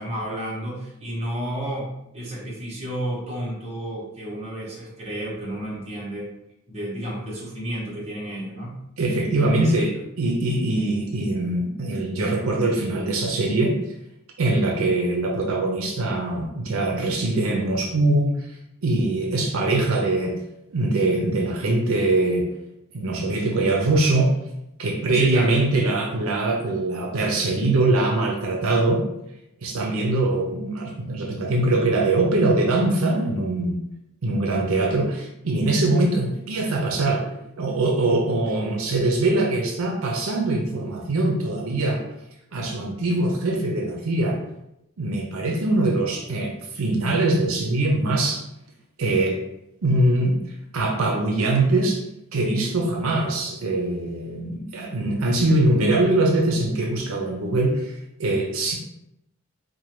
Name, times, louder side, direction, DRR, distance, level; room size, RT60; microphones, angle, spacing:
voice 1, 0.0-6.3 6.7-8.8 9.6-9.8 25.1-25.5, right 1 dB, 30° right, -5 dB, 1.1 m, -31 dB
voice 2, 9.0-13.7 14.4-18.4 18.8-20.4 20.7-22.5 22.9-24.3 24.8-29.0 29.6-33.8 34.2-37.3 37.6-42.0 42.5-44.4 45.0-48.4 49.0-49.4 49.8-50.4 50.7-52.0 52.3-58.7, right 2 dB, 80° right, 0 dB, 0.6 m, -22 dB
4.3 x 2.2 x 3.1 m, 0.83 s
head